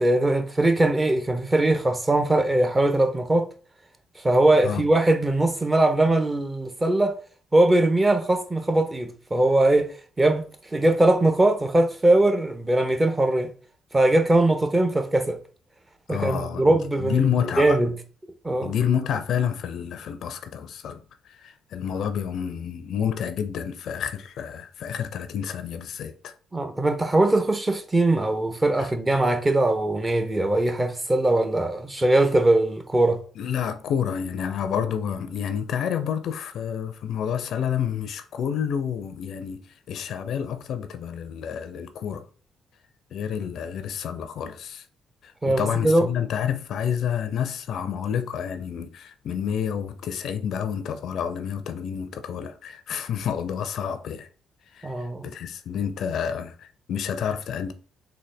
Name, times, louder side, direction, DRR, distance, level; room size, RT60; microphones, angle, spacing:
voice 1, 0.0-3.5 4.2-7.2 7.5-9.9 10.2-13.5 13.9-15.4 16.1-17.3 17.6-17.9 18.4-18.7 26.5-33.2 45.4-46.1 54.8-55.3, right 2 dB, 25° right, 0.7 m, -21 dB
voice 2, 16.1-17.8 18.6-26.3 28.8-28.9 33.4-42.3 43.1-44.9 45.2-54.3 54.7-57.7, left 8 dB, 65° left, 0.4 m, -29 dB
3.9 x 2.2 x 3.3 m
hypercardioid pair, 50°, 0 cm